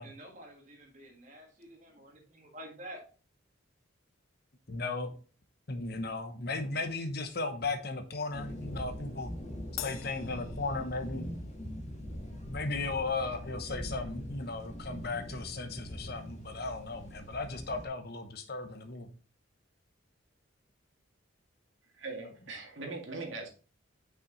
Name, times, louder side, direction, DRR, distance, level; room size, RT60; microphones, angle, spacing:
voice 1, 0.0-3.0, right 1 dB, 35° right, 0 dB, 1.7 m, -49 dB
voice 2, 4.7-5.2 5.7-9.3 9.8-11.3 12.4-19.1, left 3 dB, 50° left, 8 dB, 1.0 m, -36 dB
sound 1, 8.3-17.9, equal, 35° left, 1.9 m, -42 dB
Crash cymbal, 9.8-11.4, left 13 dB, 85° left, 0.5 m, -44 dB
voice 3, 22.0-23.5, right 3 dB, 70° right, 2 dB, 2.0 m, -40 dB
6.1 x 5.8 x 3.9 m, 0.37 s
head